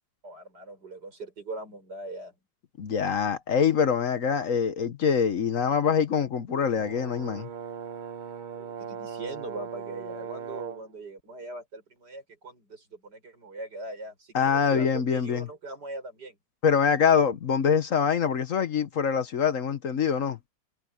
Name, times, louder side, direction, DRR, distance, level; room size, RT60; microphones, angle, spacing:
voice 1, 0.2-2.3 8.6-16.4, right 2 dB, 85° right, 7.5 m, -41 dB
voice 2, 2.8-7.5 14.3-15.5 16.6-20.4, left 7 dB, 55° left, 1.3 m, -24 dB
Brass instrument, 6.8-10.9, right 7 dB, 50° right, 0.5 m, -39 dB
omnidirectional pair, 1.8 m